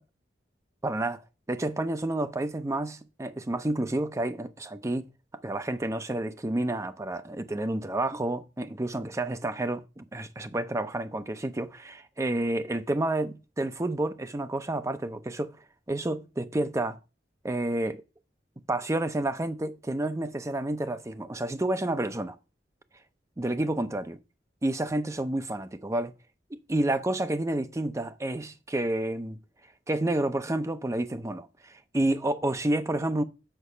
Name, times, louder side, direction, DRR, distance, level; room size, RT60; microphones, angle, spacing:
voice 1, 0.8-1.2 1.5-5.1 5.4-15.6 15.9-17.0 17.4-18.0 18.7-22.4 23.4-24.2 24.6-26.1 26.5-29.4 29.9-33.2, right 1 dB, 15° right, 0.6 m, -30 dB
6.7 x 4.9 x 5.5 m
head